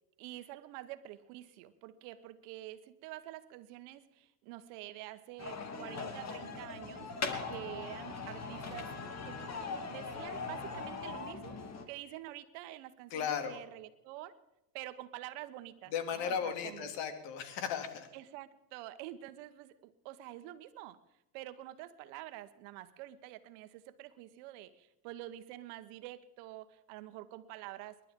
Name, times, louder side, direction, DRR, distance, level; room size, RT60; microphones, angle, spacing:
voice 1, 0.2-7.1 7.5-8.9 9.2-9.4 9.9-11.6 11.9-14.4 14.7-16.9 18.1-21.0 21.3-28.0, right 14 dB, 65° right, 12 dB, 1.3 m, -47 dB
sound 1, 5.4-11.8, left 4 dB, 35° left, 2.8 m, -40 dB
voice 2, 13.1-13.6 15.9-18.1, left 7 dB, 60° left, 7 dB, 2.8 m, -36 dB
29.5 x 11.5 x 3.8 m, 0.91 s
hypercardioid pair, 85°, 48 cm